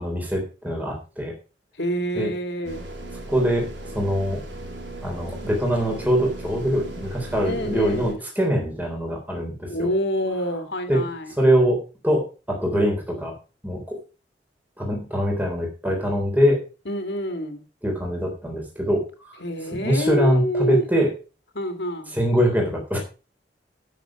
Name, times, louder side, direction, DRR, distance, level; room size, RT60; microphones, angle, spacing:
voice 1, 0.0-1.3 2.2-2.3 3.3-3.7 4.0-4.4 5.0-9.9 10.9-11.0 11.4-13.3 13.6-14.0 14.8-16.6 17.8-19.4 19.7-21.1 22.1-23.0, equal, 10° right, 0 dB, 3.8 m, -23 dB
voice 2, 1.8-2.8 7.4-8.2 9.7-11.3 16.9-17.6 19.4-20.8 21.5-22.1, equal, 65° left, 7 dB, 2.3 m, -27 dB
sound 1, 2.6-8.1, right 1 dB, 90° right, 3.3 m, -37 dB
12.5 x 7.1 x 5.2 m, 0.34 s
head